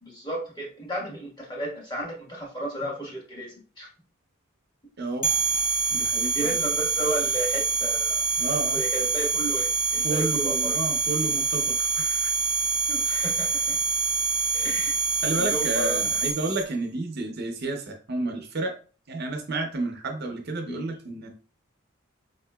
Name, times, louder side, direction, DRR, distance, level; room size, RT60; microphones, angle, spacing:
voice 1, 0.0-3.9 6.3-8.2 8.7-10.8 12.9-13.8 14.5-15.0 15.3-16.2 20.7-20.8, right 1 dB, 20° left, -3 dB, 1.3 m, -33 dB
voice 2, 5.0-5.3 5.9-6.5 8.4-8.8 10.0-12.3 12.9-13.0 15.2-18.7 19.1-21.3, right 2 dB, 50° right, 3 dB, 0.6 m, -31 dB
sound 1, 5.2-16.6, right 4 dB, 40° left, 0.9 m, -25 dB
5.0 x 2.8 x 2.2 m, 0.37 s
head